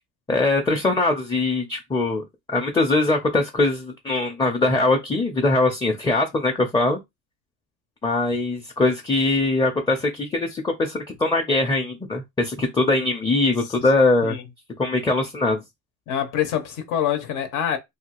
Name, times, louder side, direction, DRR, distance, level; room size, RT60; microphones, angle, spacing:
voice 1, 0.3-2.2 2.5-7.0 8.0-14.4 14.8-15.6, left 2 dB, 15° left, 0.5 m, -22 dB
voice 2, 16.1-17.8, left 10 dB, 75° left, 0.8 m, -25 dB
2.7 x 2.4 x 2.9 m
cardioid pair, 115°, 31 cm